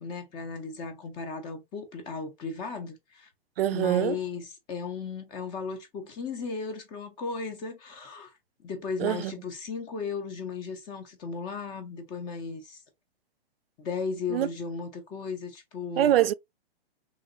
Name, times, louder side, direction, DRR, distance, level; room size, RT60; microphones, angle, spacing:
voice 1, 0.0-3.3 3.7-8.3 8.6-12.8 13.8-16.2, left 5 dB, 15° left, 0.4 m, -36 dB
voice 2, 3.6-4.2 9.0-9.4 14.3-14.5 16.0-16.3, right 12 dB, 70° right, 0.4 m, -24 dB
3.1 x 2.9 x 2.4 m
hypercardioid pair, 140°, 31 cm